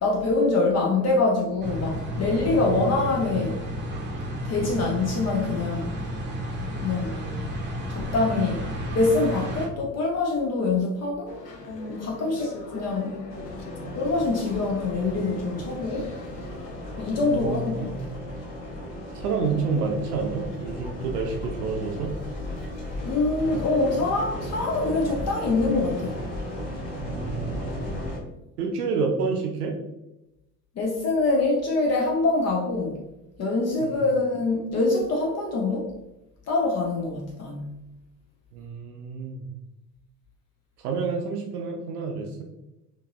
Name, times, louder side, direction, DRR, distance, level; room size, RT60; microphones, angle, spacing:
voice 1, 0.0-3.6 4.4-6.0 6.8-7.5 7.9-11.4 11.9-13.2 14.0-16.1 17.0-18.0 23.0-26.2 30.8-33.0 33.4-35.9 36.5-37.8, left 3 dB, 35° left, -1 dB, 0.6 m, -25 dB
sound 1, 1.6-9.7, equal, 25° right, 0.8 m, -32 dB
voice 2, 2.5-2.8 17.2-18.1 19.1-22.1 27.0-27.9 28.6-29.8 33.8-34.0 38.5-39.5 40.8-42.4, right 4 dB, 70° right, 1 dB, 0.6 m, -29 dB
sound 2, 11.3-17.2, left 3 dB, 80° left, 0.6 m, -41 dB
sound 3, 13.3-28.2, left 1 dB, 55° left, 1.2 m, -35 dB
3.9 x 2.6 x 2.3 m, 0.92 s
figure-of-eight pair, 60°, 48 cm